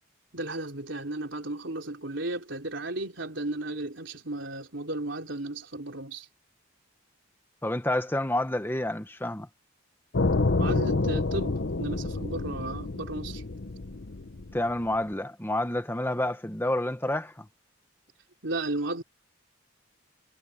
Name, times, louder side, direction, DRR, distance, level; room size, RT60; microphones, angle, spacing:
voice 1, 0.3-6.3 10.6-13.4 18.4-19.0, right 2 dB, 65° right, 3.8 m, -34 dB
voice 2, 7.6-9.5 14.5-17.5, left 1 dB, 10° left, 1.1 m, -29 dB
sound 1, 10.1-15.0, left 3 dB, 60° left, 0.9 m, -28 dB
head